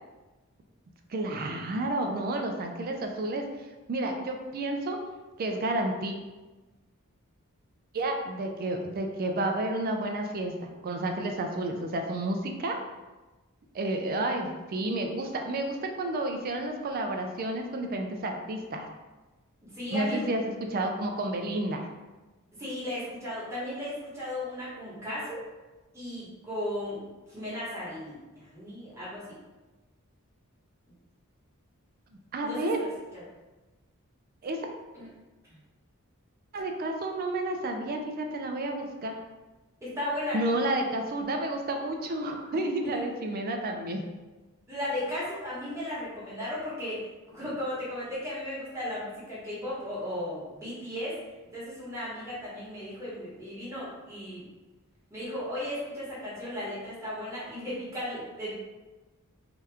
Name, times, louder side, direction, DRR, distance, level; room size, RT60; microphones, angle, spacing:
voice 1, 1.1-3.5 3.9-5.0 5.4-6.1 7.9-12.8 13.7-18.9 19.9-20.4 20.7-21.9 32.3-32.9 34.4-34.6 36.5-39.2 40.3-44.0 47.4-47.5, right 1 dB, 40° right, 3 dB, 0.4 m, -31 dB
voice 2, 19.6-20.3 22.5-25.4 25.9-28.2 28.5-29.2 32.4-32.9 33.1-33.2 34.9-35.1 39.8-40.5 44.7-51.2 51.5-54.5 55.1-58.5, left 1 dB, 15° right, -9 dB, 1.1 m, -35 dB
2.8 x 2.3 x 3.3 m, 1.2 s
head